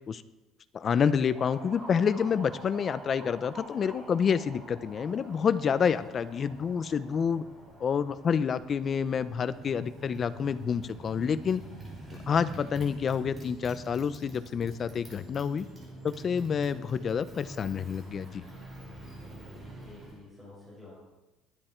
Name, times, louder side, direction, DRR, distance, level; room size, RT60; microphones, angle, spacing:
voice 1, 0.7-7.4 7.8-11.6 12.3-15.7 16.0-18.4, left 7 dB, 30° left, 13 dB, 0.6 m, -28 dB
Motorcycle, 1.2-20.2, right 1 dB, 20° right, 5.0 m, -46 dB
voice 2, 19.1-21.0, left 2 dB, ahead, -9 dB, 5.9 m, -51 dB
21.5 x 10.0 x 4.5 m, 1.1 s
cardioid pair, 155°, 0 cm